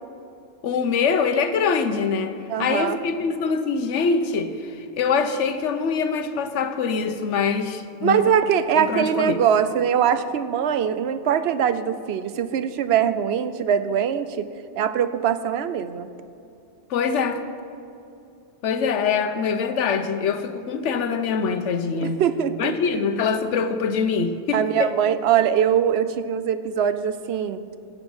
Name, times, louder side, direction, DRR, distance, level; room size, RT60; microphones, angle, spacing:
voice 1, 0.6-8.3 8.8-9.4 16.9-17.4 18.6-22.2 22.6-24.9, left 5 dB, 85° left, 9 dB, 1.1 m, -24 dB
voice 2, 2.5-3.0 8.0-14.5 14.8-16.1 22.0-23.0 24.5-27.6, right 8 dB, 70° right, 12 dB, 0.8 m, -22 dB
16.5 x 7.0 x 5.5 m, 2.6 s
omnidirectional pair, 1.2 m